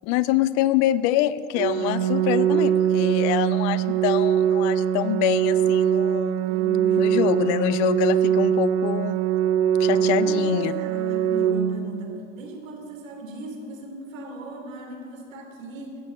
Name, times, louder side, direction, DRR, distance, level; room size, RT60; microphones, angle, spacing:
voice 1, 0.0-6.4 7.0-9.2 9.8-10.7, left 14 dB, 45° left, 16 dB, 0.5 m, -25 dB
Organ, 1.6-12.6, right 9 dB, 60° right, 0.6 m, -22 dB
voice 2, 6.4-7.3 9.9-16.0, equal, 75° right, 1 dB, 3.0 m, -38 dB
15.0 x 6.1 x 8.2 m, 2.8 s
hypercardioid pair, 90°, 40 cm